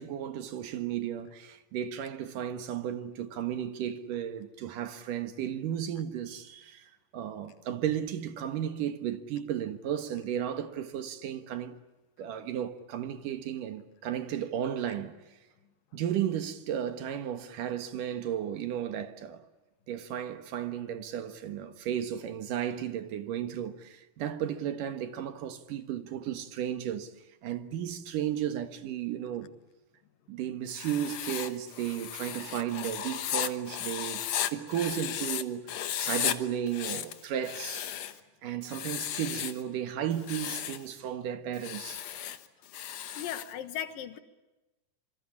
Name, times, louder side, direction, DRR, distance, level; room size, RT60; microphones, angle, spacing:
voice 1, 0.0-11.8 12.2-15.1 15.9-19.5 19.9-27.1 27.4-29.5 30.3-37.9 38.4-42.1, right 10 dB, 70° right, 3.0 m, -34 dB
Writing, 30.7-35.4 35.7-36.4 36.7-38.2 38.6-39.6 40.1-40.8 41.5-43.5, left 10 dB, 60° left, 2.1 m, -35 dB
voice 2, 43.2-44.2, left 10 dB, 80° left, 3.1 m, -37 dB
26.5 x 25.5 x 8.6 m
omnidirectional pair, 4.0 m